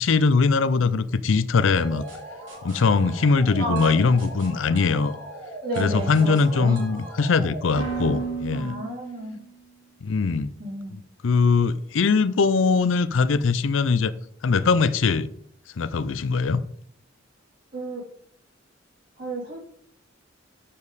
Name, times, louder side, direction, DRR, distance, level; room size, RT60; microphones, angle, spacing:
voice 1, 0.0-2.1 2.6-5.2 5.8-8.8 10.0-10.5 10.9-14.1 14.4-15.3 15.8-16.6, left 4 dB, 75° left, 15 dB, 0.5 m, -21 dB
sound 1, 1.8-9.5, right 3 dB, 70° right, 3.4 m, -36 dB
voice 2, 3.6-3.9 5.6-6.8 8.5-9.4 10.6-11.0 17.7-18.0 19.2-19.6, right 2 dB, 50° right, -3 dB, 3.5 m, -31 dB
7.3 x 6.9 x 4.1 m, 0.65 s
head